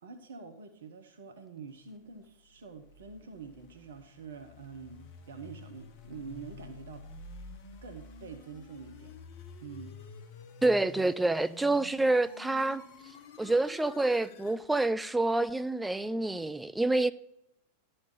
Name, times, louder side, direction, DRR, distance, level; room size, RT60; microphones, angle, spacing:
voice 1, 0.0-7.1 7.8-9.2 9.6-10.0, right 5 dB, 65° right, 0.9 m, -46 dB
sound 1, 2.4-14.6, left 4 dB, 45° left, 1.0 m, -50 dB
voice 2, 10.6-12.8 13.4-17.1, right 2 dB, 5° right, 0.4 m, -27 dB
12.0 x 4.4 x 6.7 m
figure-of-eight pair, 90°, 0 cm